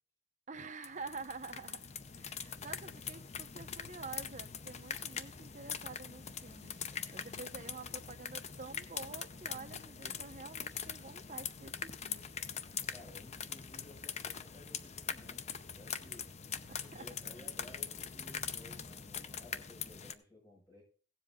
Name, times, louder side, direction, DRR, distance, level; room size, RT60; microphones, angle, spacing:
voice 1, 0.5-6.7 7.1-12.2 16.7-17.1, right 4 dB, 40° right, 1.0 m, -48 dB
sound 1, 0.8-20.1, left 7 dB, 35° left, 0.6 m, -43 dB
sound 2, 1.1-19.3, left 2 dB, 55° left, 5.5 m, -73 dB
voice 2, 12.9-16.2 16.8-20.8, left 2 dB, 20° left, 7.2 m, -57 dB
16.5 x 7.5 x 3.8 m
head